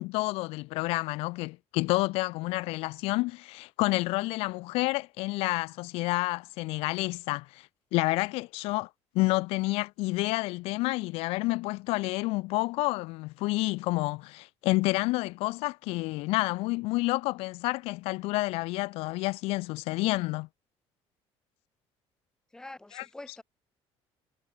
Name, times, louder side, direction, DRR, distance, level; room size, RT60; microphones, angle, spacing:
voice 1, 0.0-8.9 9.1-20.5 22.9-23.0, left 22 dB, 70° left, 0.5 m, -29 dB
voice 2, 22.5-23.4, left 2 dB, 5° left, 1.3 m, -45 dB
cardioid pair, 175°, 10 cm